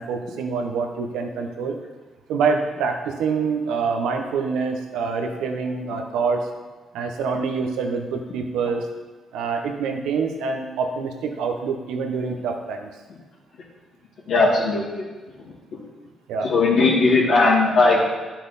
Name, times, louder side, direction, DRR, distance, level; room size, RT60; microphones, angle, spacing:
voice 1, 0.0-1.8 2.3-6.5 6.9-8.9 9.3-12.9 16.3-16.5, right 5 dB, 85° right, 4 dB, 1.0 m, -26 dB
voice 2, 14.3-15.0 15.7-15.8 16.4-18.0, left 3 dB, 75° left, -6 dB, 2.4 m, -18 dB
10.5 x 5.9 x 4.2 m, 1.3 s
cardioid pair, 90°, 0 cm